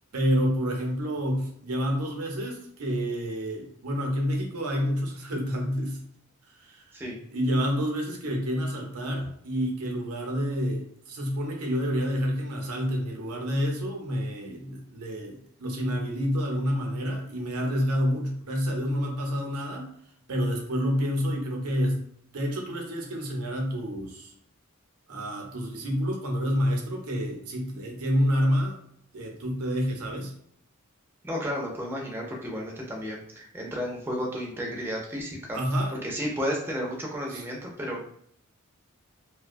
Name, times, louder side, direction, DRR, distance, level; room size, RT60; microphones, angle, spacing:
voice 1, 0.1-6.0 6.4-7.0 7.3-19.9 20.3-22.0 22.3-24.3 25.1-28.8 29.1-30.3 35.5-36.0 37.3-37.4, equal, 85° right, 1 dB, 0.6 m, -28 dB
voice 2, 31.2-35.6 36.0-38.0, equal, 10° right, -2 dB, 0.4 m, -32 dB
2.5 x 2.2 x 2.5 m, 0.68 s
head